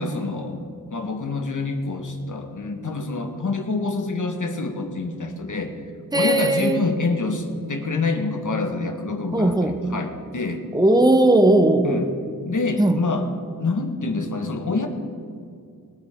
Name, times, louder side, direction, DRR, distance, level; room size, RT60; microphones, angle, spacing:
voice 1, 0.0-5.7 6.1-10.6 11.8-12.1 12.4-13.3 13.6-14.9, left 3 dB, 55° left, 5 dB, 1.7 m, -26 dB
voice 2, 6.1-6.9 9.3-9.8 10.7-12.0 12.8-13.0, right 1 dB, 10° right, 8 dB, 1.1 m, -18 dB
21.5 x 9.5 x 3.8 m, 2.4 s
cardioid pair, 60°, 36 cm